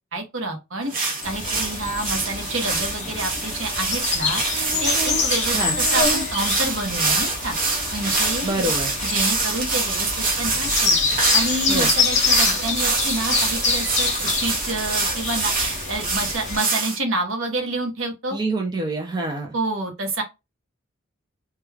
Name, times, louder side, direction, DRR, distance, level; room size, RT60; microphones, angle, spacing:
voice 1, 0.1-5.6 5.9-7.6 7.9-8.7 9.0-11.0 11.3-18.4 19.5-20.2, right 2 dB, 65° right, 0.8 m, -28 dB
sound 1, 0.9-17.0, right 3 dB, 40° right, 0.8 m, -25 dB
sound 2, 1.2-16.6, left 4 dB, 35° left, 0.5 m, -26 dB
voice 2, 8.4-8.9 11.7-11.9 18.3-19.5, right 2 dB, 20° right, 0.4 m, -26 dB
2.3 x 2.2 x 3.1 m
head